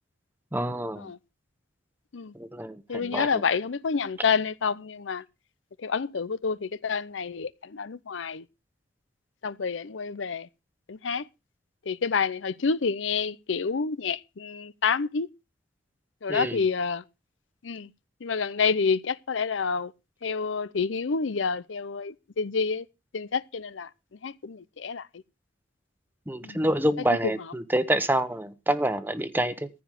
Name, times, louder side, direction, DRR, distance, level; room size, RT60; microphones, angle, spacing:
voice 1, 0.5-1.1 2.3-3.3 16.3-16.6 26.3-29.7, right 1 dB, 10° right, 1.0 m, -27 dB
voice 2, 2.9-5.2 5.8-8.4 9.4-10.5 10.9-11.3 11.9-15.3 16.2-17.0 17.6-17.9 18.2-19.9 20.2-22.9 23.1-25.1 26.4-26.6 27.2-27.3, left 5 dB, 80° left, 0.6 m, -28 dB
14.5 x 5.0 x 9.2 m
head